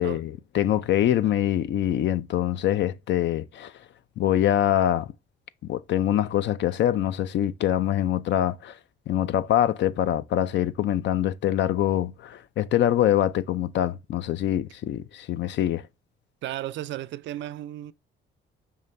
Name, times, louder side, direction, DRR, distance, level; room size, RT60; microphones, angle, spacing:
voice 1, 0.0-3.7 4.2-5.1 5.7-8.8 9.1-15.8, left 11 dB, 65° left, 0.5 m, -24 dB
voice 2, 16.4-17.9, right 13 dB, 70° right, 0.4 m, -34 dB
5.5 x 2.8 x 3.2 m
cardioid pair, 90°, 20 cm